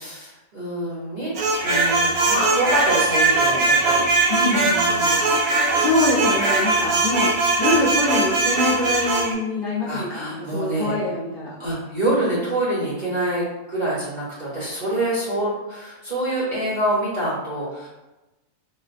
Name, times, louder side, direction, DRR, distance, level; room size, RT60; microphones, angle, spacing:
voice 1, 0.0-1.3 1.6-4.1 4.5-5.2 9.8-11.0 11.6-17.9, right 1 dB, 40° right, -8 dB, 0.8 m, -26 dB
sound 1, 1.3-9.3, right 3 dB, 80° right, 1.0 m, -20 dB
voice 2, 4.3-11.5, left 2 dB, 50° left, -9 dB, 0.7 m, -25 dB
3.9 x 2.1 x 2.5 m, 1.0 s
omnidirectional pair, 1.5 m